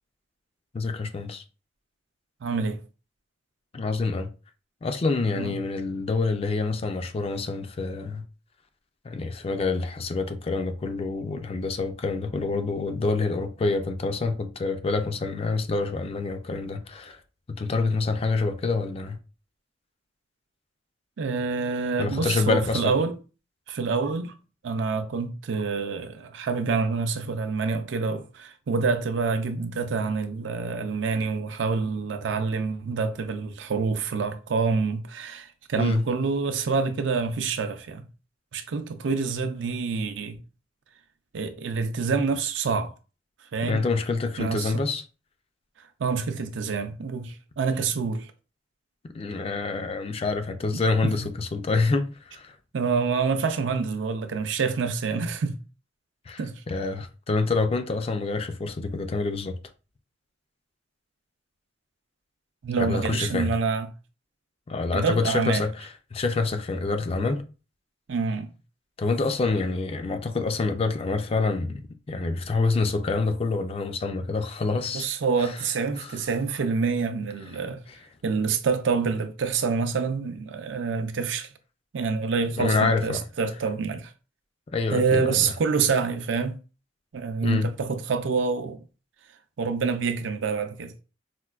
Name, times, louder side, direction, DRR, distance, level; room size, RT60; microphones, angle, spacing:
voice 1, 0.7-1.4 3.7-4.3 4.8-8.2 9.0-17.2 17.6-19.2 22.0-23.0 35.8-36.0 43.6-45.0 49.0-52.5 56.3-56.4 56.7-59.6 62.8-63.5 64.7-67.4 69.0-75.1 75.4-75.5 76.0-76.2 82.6-83.3 84.7-85.5 87.4-87.7, left 3 dB, 30° left, 0.3 m, -27 dB
voice 2, 2.4-2.8 5.4-5.5 21.2-23.2 23.7-24.3 24.6-38.0 38.5-40.4 41.3-42.9 43.5-43.8 44.4-44.8 46.0-48.3 50.7-51.3 52.7-55.6 56.4-56.6 62.6-63.9 64.9-65.6 68.1-68.5 74.9-77.8 78.2-81.5 81.9-84.1 84.9-86.6 87.1-88.8 89.6-90.9, right 4 dB, 75° right, 0.4 m, -27 dB
4.3 x 2.2 x 2.3 m
head